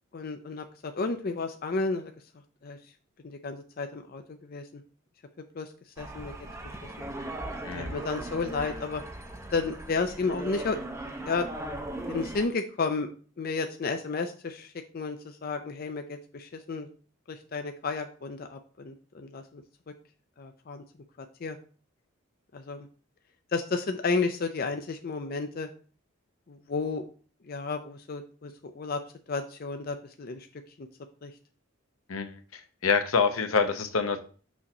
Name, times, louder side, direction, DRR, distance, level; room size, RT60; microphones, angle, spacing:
voice 1, 0.1-2.1 2.6-2.8 3.2-4.8 5.5-6.3 7.7-9.0 9.5-10.8 11.2-11.5 12.1-13.1 13.4-16.9 17.3-19.6 20.4-20.8 21.2-21.6 22.5-22.9 23.5-25.7 26.5-27.1 27.4-29.0 29.3-30.9 31.2-31.3, left 4 dB, 45° left, 6 dB, 0.5 m, -32 dB
sound 1, 6.0-12.5, right 1 dB, 15° right, 0.6 m, -38 dB
voice 2, 7.6-7.9 32.1-34.2, left 5 dB, 80° left, 7 dB, 0.8 m, -27 dB
6.2 x 2.9 x 5.3 m, 0.40 s
head